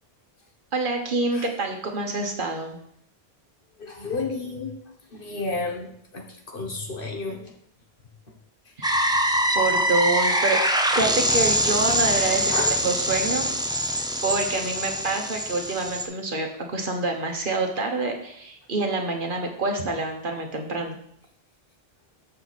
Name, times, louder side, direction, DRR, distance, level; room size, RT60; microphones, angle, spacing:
voice 1, 0.7-2.8 8.8-9.0 9.5-10.6 11.0-13.5 14.2-21.0, right 3 dB, 55° right, 3 dB, 1.2 m, -27 dB
voice 2, 3.8-4.7 5.1-5.9 6.1-7.5 12.5-12.8 14.0-14.1, left 3 dB, 60° left, 2 dB, 1.4 m, -31 dB
sound 1, 8.8-16.1, right 1 dB, 5° right, 0.6 m, -24 dB
6.8 x 6.7 x 4.1 m, 0.68 s
omnidirectional pair, 1.0 m